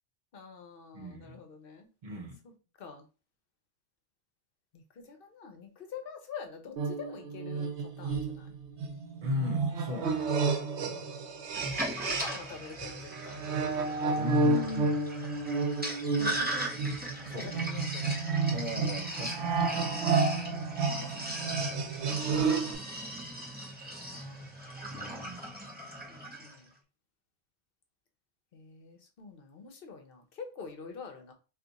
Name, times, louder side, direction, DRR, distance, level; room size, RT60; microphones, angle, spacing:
voice 1, 0.3-1.9 2.8-3.0 4.7-8.5 10.8-11.2 12.1-13.4 14.3-14.9 17.4-18.1 20.5-20.7 21.0-21.5 23.9-24.5 26.1-26.7 28.5-31.3, left 6 dB, 60° left, 0.8 m, -46 dB
voice 2, 0.9-1.4 2.0-2.4 9.2-10.3 14.2-15.0 17.2-17.6 18.5-19.8 24.9-25.5, left 2 dB, 50° right, 0.9 m, -37 dB
sound 1, 6.8-12.5 12.8-22.8, right 4 dB, 85° right, 0.9 m, -31 dB
Sink (filling or washing), 11.6-26.6, right 1 dB, 10° right, 0.6 m, -38 dB
2.5 x 2.4 x 3.9 m
omnidirectional pair, 1.1 m